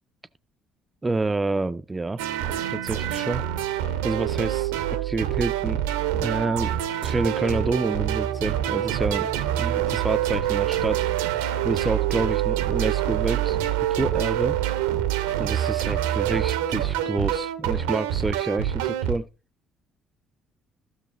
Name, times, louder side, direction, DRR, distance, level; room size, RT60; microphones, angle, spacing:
voice 1, 1.0-2.2 2.7-3.4 4.0-5.8 6.2-9.3 9.6-11.1 11.6-14.6 15.4-19.3, right 3 dB, 20° right, 0.3 m, -28 dB
sound 1, 2.2-19.2, right 12 dB, 70° right, 0.5 m, -26 dB
Bowed string instrument, 6.9-11.3, right 2 dB, 60° left, 1.9 m, -43 dB
13.5 x 6.4 x 3.0 m
figure-of-eight pair, 50°, 0 cm